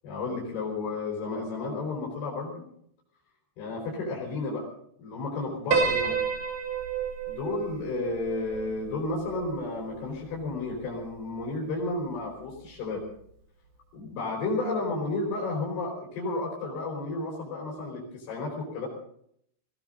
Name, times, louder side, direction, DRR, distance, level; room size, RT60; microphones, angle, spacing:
voice 1, 0.0-2.6 3.6-4.7 5.0-6.2 7.3-13.0 13.9-18.9, left 3 dB, 75° left, -2 dB, 6.5 m, -32 dB
Piano, 5.7-10.1, right 5 dB, 55° right, 3.7 m, -30 dB
20.0 x 17.5 x 4.0 m, 0.67 s
omnidirectional pair, 4.7 m